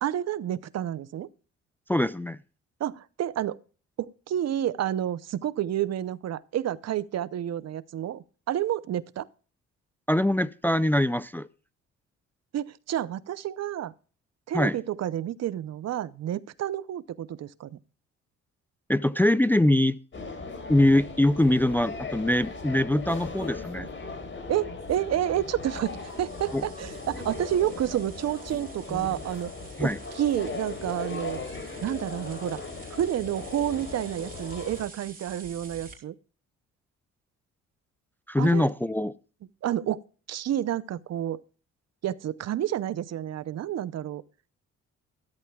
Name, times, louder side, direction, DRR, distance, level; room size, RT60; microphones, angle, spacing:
voice 1, 0.0-1.3 2.8-3.6 4.0-9.3 12.5-13.9 14.5-17.7 24.5-29.5 29.8-31.4 31.8-32.6 33.0-36.1 38.4-38.7 39.6-41.4 42.0-44.2, right 11 dB, 60° right, 0.7 m, -30 dB
voice 2, 1.9-2.4 10.1-11.5 14.5-14.8 18.9-20.0 20.7-23.9 26.5-26.6 29.8-30.0 38.3-39.1, left 1 dB, 5° left, 0.4 m, -23 dB
sound 1, 20.1-34.8, left 3 dB, 40° left, 4.7 m, -38 dB
sound 2, 25.7-35.9, right 4 dB, 30° right, 3.3 m, -49 dB
13.5 x 13.0 x 2.3 m
cardioid pair, 90°, 30 cm